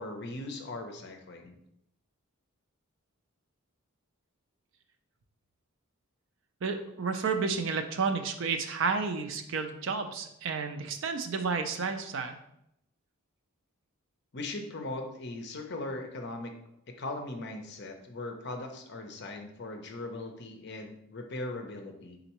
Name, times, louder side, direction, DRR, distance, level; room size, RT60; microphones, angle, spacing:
voice 1, 0.0-1.6 14.3-16.5 17.0-22.2, left 2 dB, 50° left, 4 dB, 0.6 m, -39 dB
voice 2, 6.6-12.4, right 5 dB, 55° right, 7 dB, 0.4 m, -31 dB
4.3 x 3.8 x 3.0 m, 0.77 s
head